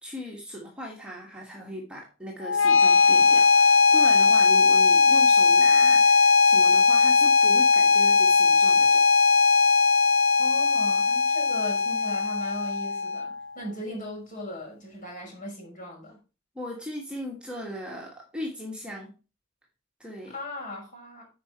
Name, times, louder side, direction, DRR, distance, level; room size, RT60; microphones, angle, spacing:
voice 1, 0.0-9.0 16.5-19.1 20.0-20.3, equal, 5° right, -2 dB, 1.6 m, -38 dB
sound 1, 2.4-13.4, left 4 dB, 80° left, 0.7 m, -19 dB
voice 2, 10.4-16.2 20.3-21.3, left 1 dB, 40° left, -1 dB, 5.7 m, -37 dB
9.2 x 5.6 x 4.2 m, 0.33 s
head